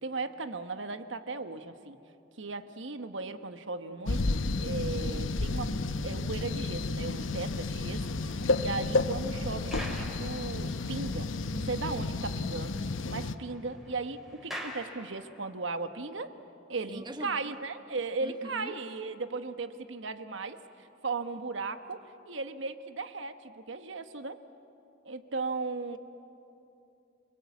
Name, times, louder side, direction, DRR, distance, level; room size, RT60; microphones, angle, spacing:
voice 1, 0.0-2.0 2.4-5.7 6.0-12.8 13.1-16.3 16.7-22.0 22.3-24.4 25.0-26.0, right 3 dB, 75° right, 10 dB, 1.2 m, -37 dB
sound 1, 4.1-13.3, left 3 dB, 85° left, 0.8 m, -31 dB
sound 2, 7.7-11.1 11.6-11.7 12.0-12.1 12.4-15.7, equal, ahead, 3.1 m, -46 dB
voice 2, 16.9-17.5 18.2-18.8, right 1 dB, 25° right, 7 dB, 1.2 m, -42 dB
29.0 x 21.0 x 8.3 m, 2.8 s
head